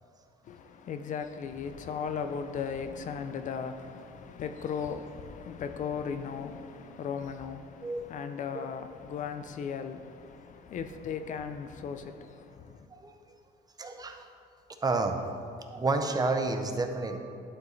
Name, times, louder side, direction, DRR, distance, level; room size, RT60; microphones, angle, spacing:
voice 1, 0.4-12.9, left 6 dB, 50° left, 0.5 m, -37 dB
voice 2, 13.8-14.2 14.8-17.2, right 3 dB, 25° right, 0.6 m, -30 dB
11.0 x 4.6 x 3.2 m
cardioid pair, 110°, 17 cm